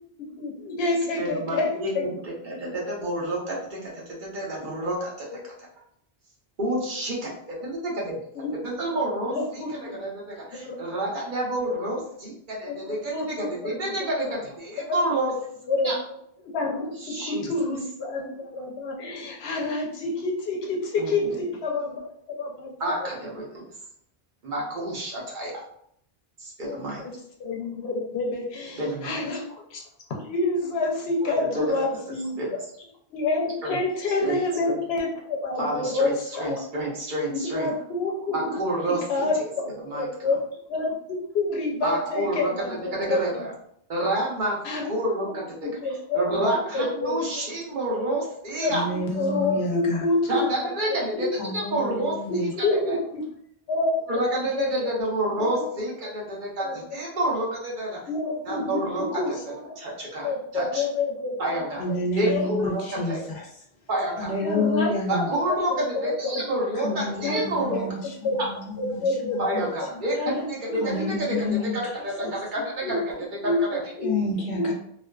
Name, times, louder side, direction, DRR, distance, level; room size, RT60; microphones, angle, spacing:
voice 1, 0.2-2.1 8.4-8.7 9.3-10.0 10.6-10.8 12.7-13.9 14.8-15.0 15.7-15.9 16.4-23.1 26.6-27.1 27.4-29.8 30.1-32.4 33.1-36.6 37.3-38.6 38.8-40.4 40.7-43.4 44.6-44.9 45.2-47.3 47.7-48.0 48.6-51.3 52.3-53.2 53.7-53.9 54.5-54.7 55.5-55.6 56.6-57.0 58.1-58.8 59.1-59.6 60.2-61.6 61.9-62.0 62.3-62.5 64.4-66.4 67.2-67.8 68.2-68.4 68.8-69.9 70.2-70.5 70.9-71.1 72.2-72.3 72.8-73.0 73.4-73.6 73.9-74.1 74.5-74.7, left 2 dB, 85° left, 0 dB, 0.8 m, -28 dB
voice 2, 1.2-1.9 2.4-5.3 6.6-15.3 15.8-16.0 17.0-17.5 21.0-21.4 22.8-23.6 24.4-25.6 26.4-27.0 28.8-29.2 31.2-31.7 32.4-32.5 33.6-33.8 34.2-34.4 34.6-34.8 35.6-37.7 38.3-39.3 39.8-40.1 41.8-43.5 43.9-44.6 44.9-45.7 46.1-48.8 50.3-51.3 51.5-53.0 54.1-58.0 58.4-60.8 61.4-61.9 62.1-63.3 63.9-64.3 65.1-67.8 69.4-70.2 70.5-73.3 73.6-73.8, right 1 dB, 55° right, -3 dB, 0.9 m, -29 dB
voice 3, 48.7-50.1 51.4-52.5 61.8-63.5 64.2-65.3 66.8-69.6 70.8-71.8 74.0-74.7, left 2 dB, 55° left, -1 dB, 0.7 m, -29 dB
2.4 x 2.3 x 2.2 m, 0.68 s
omnidirectional pair, 1.0 m